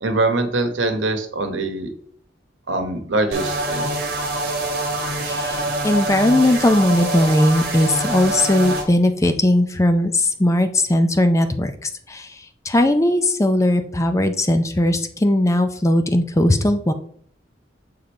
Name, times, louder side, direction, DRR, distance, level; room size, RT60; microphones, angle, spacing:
voice 1, 0.0-1.9 2.7-3.9, right 2 dB, 90° right, 6 dB, 1.0 m, -23 dB
sound 1, 3.3-8.8, right 2 dB, 50° right, 1.4 m, -25 dB
voice 2, 5.2-16.9, left 1 dB, 15° left, 8 dB, 0.4 m, -18 dB
7.0 x 3.7 x 4.4 m, 0.62 s
head